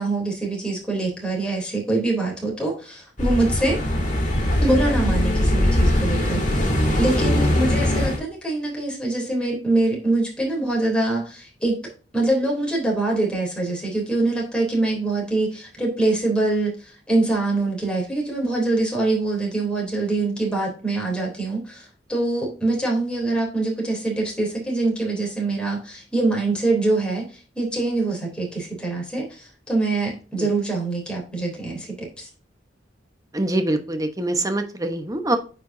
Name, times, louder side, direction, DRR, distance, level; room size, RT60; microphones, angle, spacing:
voice 1, 0.0-3.8 4.6-6.4 7.0-11.8 12.1-16.7 17.1-27.3 27.5-32.3, right 2 dB, 5° left, -2 dB, 3.4 m, -24 dB
sound 1, 3.2-8.2, left 1 dB, 45° left, 2.5 m, -21 dB
voice 2, 33.3-35.4, right 1 dB, 20° right, 7 dB, 1.0 m, -24 dB
9.0 x 5.1 x 2.7 m, 0.37 s
head